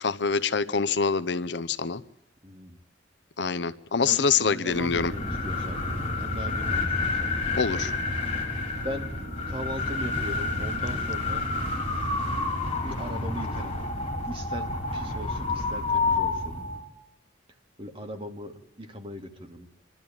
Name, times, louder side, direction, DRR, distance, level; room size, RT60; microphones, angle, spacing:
voice 1, 0.0-2.0 3.4-5.1 7.5-7.9, left 5 dB, 65° left, 15 dB, 0.8 m, -25 dB
voice 2, 2.4-2.8 3.5-3.7 4.0-5.9 6.2-7.4 8.8-11.5 11.9-12.3 12.8-13.8 14.2-16.6 17.8-19.7, equal, 30° right, 4 dB, 2.5 m, -39 dB
sound 1, 4.1-15.4, right 1 dB, 50° right, 3.8 m, -47 dB
sound 2, 4.7-16.8, left 3 dB, 30° left, 4.3 m, -29 dB
27.0 x 12.5 x 8.9 m, 0.83 s
head